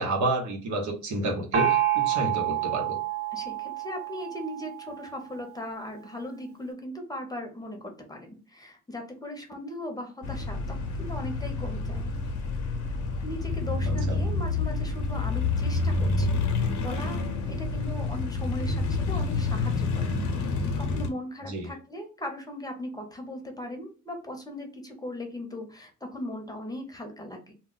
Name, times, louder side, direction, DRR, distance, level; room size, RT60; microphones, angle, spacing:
voice 1, 0.0-3.0 14.1-14.2 21.5-21.7, right 2 dB, 70° right, 2 dB, 0.9 m, -29 dB
Gong, 1.5-5.0, right 12 dB, 45° right, 0.8 m, -28 dB
voice 2, 3.3-12.1 13.2-17.2 17.5-27.5, left 1 dB, 10° left, 3 dB, 0.7 m, -38 dB
sound 1, 10.2-21.1, left 3 dB, 70° left, 0.7 m, -28 dB
2.2 x 2.1 x 3.7 m, 0.36 s
cardioid pair, 90°, 30 cm